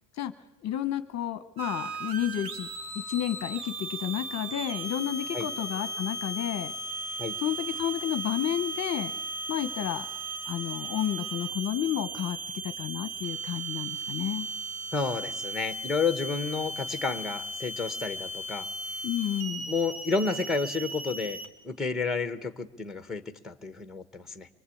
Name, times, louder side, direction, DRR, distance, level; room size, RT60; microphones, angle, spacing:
voice 1, 0.6-2.7 2.9-6.7 7.4-9.1 9.5-10.1 10.5-12.4 12.6-14.5 19.0-19.7, left 11 dB, 35° left, 11 dB, 1.0 m, -31 dB
sound 1, 1.6-21.5, right 2 dB, 80° right, 3.3 m, -36 dB
voice 2, 14.9-18.7 19.7-21.4 21.6-24.5, left 4 dB, ahead, 9 dB, 1.0 m, -31 dB
25.0 x 23.0 x 8.5 m, 0.94 s
cardioid pair, 150°, 48 cm